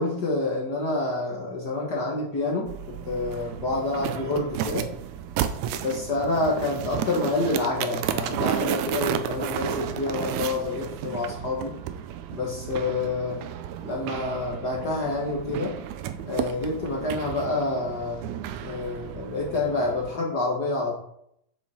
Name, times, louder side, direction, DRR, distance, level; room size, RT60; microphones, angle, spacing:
voice 1, 0.0-4.9 5.8-11.8 12.3-13.4 13.8-15.8 16.2-20.9, left 2 dB, 50° left, -2 dB, 1.3 m, -28 dB
sound 1, 2.7-20.1, right 10 dB, 80° right, 1.9 m, -33 dB
7.6 x 7.2 x 4.2 m, 0.74 s
omnidirectional pair, 3.4 m